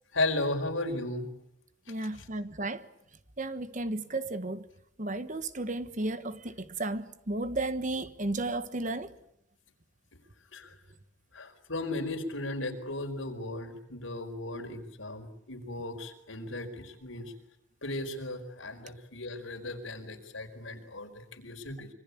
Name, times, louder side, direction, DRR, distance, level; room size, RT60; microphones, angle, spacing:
voice 1, 0.1-1.3 1.9-2.3 10.5-10.8 11.3-17.3 17.8-21.9, left 2 dB, 80° left, 4.8 m, -36 dB
voice 2, 1.9-2.9 3.4-4.6 5.0-9.1, right 2 dB, 40° right, 1.3 m, -33 dB
26.5 x 25.0 x 8.5 m
head